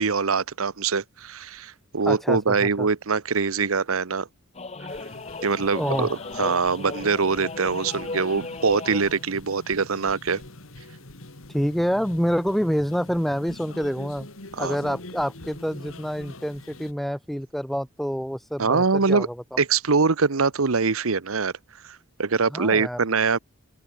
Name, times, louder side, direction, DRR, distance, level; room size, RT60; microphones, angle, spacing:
voice 1, 0.0-4.3 5.4-10.4 14.5-14.8 18.6-19.3 19.6-21.5 21.8-23.4, right 5 dB, 90° right, 1.0 m, -23 dB
voice 2, 2.0-2.9 5.7-6.1 11.5-14.3 14.6-19.6 22.5-23.0, equal, ahead, 1.3 m, -27 dB
sound 1, 4.5-9.2, left 3 dB, 30° left, 1.6 m, -35 dB
sound 2, 4.9-16.9, left 2 dB, 75° left, 3.1 m, -44 dB
open air
head